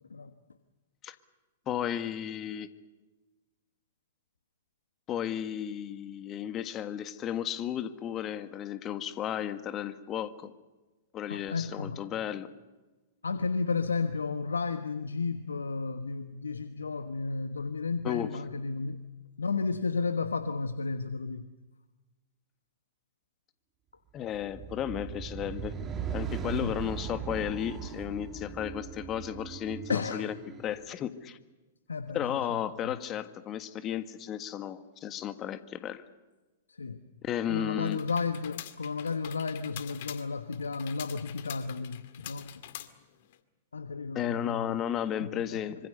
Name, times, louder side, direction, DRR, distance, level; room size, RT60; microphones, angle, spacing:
voice 1, 1.7-2.7 5.1-10.5 11.1-12.5 18.0-18.3 24.1-25.7 26.1-30.3 30.6-31.4 32.1-36.0 37.2-38.0 44.1-45.8, left 10 dB, 30° left, 11 dB, 1.7 m, -34 dB
voice 2, 11.3-12.0 13.2-19.0 19.4-21.5 26.5-26.7 29.9-30.3 31.9-33.0 36.7-37.1 37.5-42.6 43.7-44.8 45.2-45.6, left 4 dB, 80° left, 10 dB, 1.3 m, -33 dB
sound 1, 24.3-30.8, right 7 dB, 25° right, 3.1 m, -39 dB
sound 2, 37.8-43.4, left 13 dB, 50° left, 2.1 m, -45 dB
26.0 x 26.0 x 6.7 m, 1.2 s
figure-of-eight pair, 105°, 0 cm